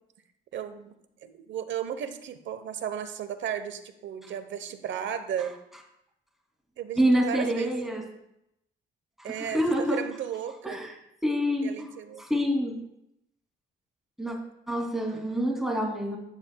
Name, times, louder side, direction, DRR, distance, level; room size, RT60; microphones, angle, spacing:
voice 1, 0.5-0.9 1.2-5.6 6.8-7.7 9.2-10.8 11.6-12.2, right 9 dB, 70° right, 10 dB, 1.0 m, -34 dB
voice 2, 7.0-8.0 9.2-10.0 10.6-10.9 11.2-11.9 12.2-12.8 14.2-14.4 14.7-16.2, equal, ahead, -1 dB, 2.8 m, -27 dB
12.5 x 9.9 x 2.3 m, 0.82 s
cardioid pair, 90°, 20 cm